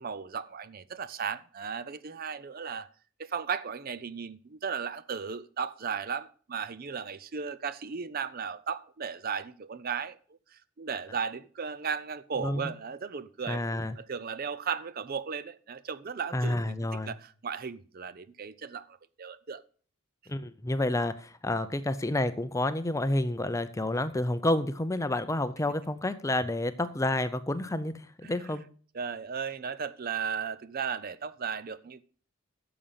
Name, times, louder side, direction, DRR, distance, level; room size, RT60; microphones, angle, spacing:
voice 1, 0.0-2.9 3.2-10.2 10.5-13.6 14.0-19.6 28.2-28.6 28.9-32.0, right 6 dB, 40° right, 0.5 m, -36 dB
voice 2, 12.4-12.7 13.5-14.0 16.3-17.1 20.3-28.6, left 1 dB, 15° left, 0.5 m, -29 dB
10.0 x 7.1 x 5.6 m
head